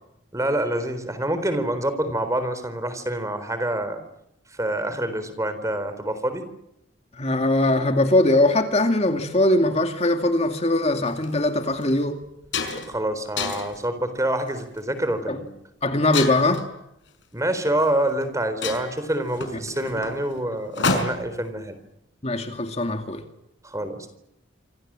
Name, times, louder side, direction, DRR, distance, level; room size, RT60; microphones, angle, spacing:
voice 1, 0.3-4.0 4.5-6.5 12.7-15.5 17.3-21.8 23.6-24.1, right 1 dB, 15° right, 10 dB, 4.0 m, -26 dB
voice 2, 7.1-12.2 15.3-15.4 15.8-16.6 22.2-23.2, left 1 dB, 35° left, 6 dB, 2.4 m, -21 dB
sound 1, 11.1-11.3 11.8-11.9 12.2-13.0 13.4-13.8 14.5-14.8 16.1-16.7 17.8-17.9 18.2-18.3 18.6-21.4, left 3 dB, 70° left, 5.6 m, -28 dB
27.0 x 27.0 x 7.6 m, 0.84 s
head